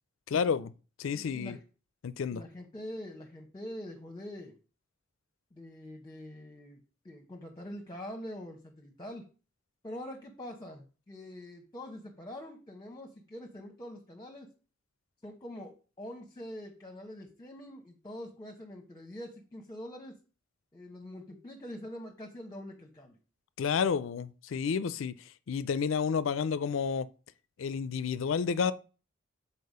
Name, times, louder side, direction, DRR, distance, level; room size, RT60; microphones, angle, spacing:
voice 1, 0.3-0.7 1.0-1.6 2.0-2.4 23.6-25.2 25.5-27.1 27.6-28.7, left 6 dB, 70° left, 0.4 m, -30 dB
voice 2, 1.1-1.6 2.3-4.6 5.5-9.3 9.8-14.5 15.2-20.2 20.7-23.2, left 1 dB, 20° left, 0.9 m, -44 dB
6.6 x 4.3 x 5.4 m
head